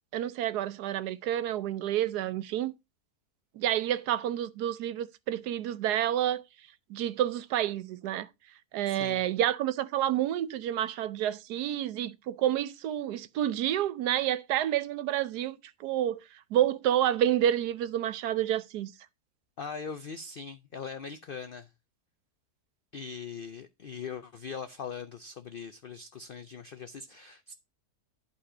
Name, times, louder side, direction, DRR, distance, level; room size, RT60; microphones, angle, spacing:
voice 1, 0.1-2.7 3.6-6.4 6.9-8.3 8.7-16.2 16.5-18.9, right 11 dB, 85° right, 1.3 m, -29 dB
voice 2, 8.9-9.2 19.6-21.7 22.9-27.5, left 6 dB, 75° left, 0.5 m, -41 dB
11.5 x 4.3 x 4.9 m
omnidirectional pair, 1.7 m